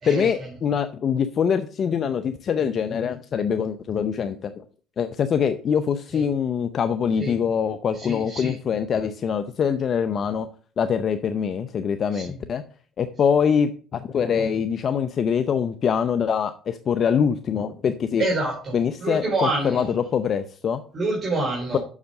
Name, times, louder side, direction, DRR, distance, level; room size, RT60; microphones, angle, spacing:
voice 1, 0.1-4.6 5.0-10.5 10.8-12.6 13.0-18.3 18.7-20.8 21.7-21.8, left 7 dB, 45° left, 10 dB, 0.6 m, -24 dB
voice 2, 8.1-8.5 12.2-12.3 18.2-18.7 19.0-19.8 20.9-21.8, right 2 dB, 40° right, -2 dB, 3.5 m, -26 dB
7.3 x 6.5 x 6.3 m, 0.43 s
supercardioid pair, 90°, 0 cm